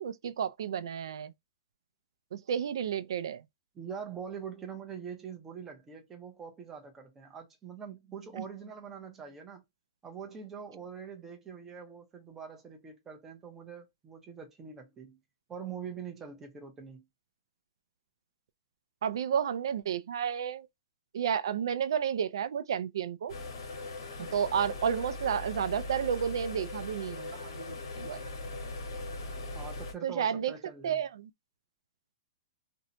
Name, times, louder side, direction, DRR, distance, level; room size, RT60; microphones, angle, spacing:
voice 1, 0.0-1.3 2.3-3.4 8.4-8.5 19.0-20.7 21.1-23.4 24.2-28.2 30.0-30.5 30.8-31.3, right 8 dB, 80° right, 0.3 m, -31 dB
voice 2, 3.8-9.6 10.0-15.2 15.5-17.0 29.5-31.0, right 7 dB, 10° right, 0.5 m, -44 dB
sound 1, 23.3-29.9, left 2 dB, 75° left, 1.2 m, -40 dB
2.6 x 2.1 x 2.7 m
supercardioid pair, 180°, 2 cm